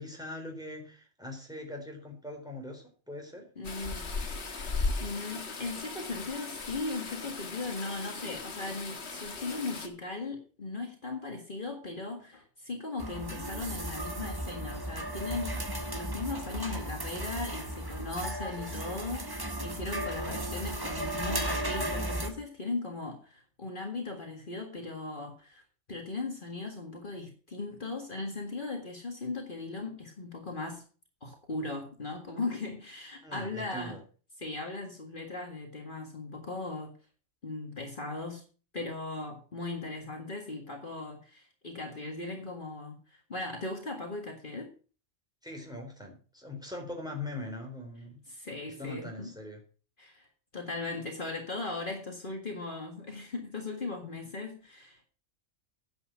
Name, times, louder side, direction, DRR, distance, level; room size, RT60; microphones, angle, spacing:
voice 1, 0.0-3.5 33.2-34.0 45.4-48.2 48.8-49.6, left 1 dB, 5° right, 1 dB, 4.0 m, -41 dB
sound 1, 3.6-9.9, left 3 dB, 70° left, 1.7 m, -37 dB
voice 2, 3.6-4.4 5.0-25.6 25.9-30.8 31.2-34.0 34.4-36.9 37.4-38.4 38.7-44.7 48.3-49.3 50.0-50.3 50.5-55.1, left 3 dB, 50° left, 2 dB, 2.0 m, -38 dB
sound 2, 13.0-22.3, right 1 dB, 20° right, 1.4 m, -35 dB
9.9 x 8.1 x 6.3 m, 0.38 s
omnidirectional pair, 1.2 m